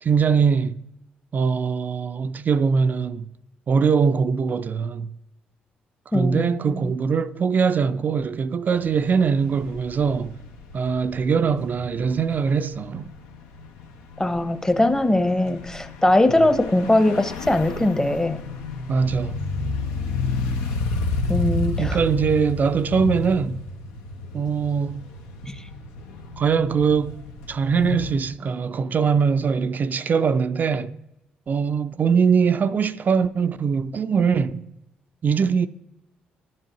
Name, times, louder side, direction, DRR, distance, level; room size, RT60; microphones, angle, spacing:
voice 1, 0.0-0.7 1.3-3.3 3.7-5.1 6.1-10.4 10.7-13.1 16.3-16.4 18.9-19.4 21.8-23.6 24.3-25.1 26.4-27.2 27.5-31.0 31.5-34.7 35.2-35.7, right 6 dB, 45° right, 0.4 m, -22 dB
voice 2, 6.1-6.5 6.8-6.9 14.2-18.4 21.3-22.0 25.4-25.5, left 1 dB, 15° left, 0.8 m, -21 dB
sound 1, 8.7-28.1, left 3 dB, 85° left, 0.6 m, -32 dB
11.0 x 7.5 x 2.9 m
hypercardioid pair, 55°, 4 cm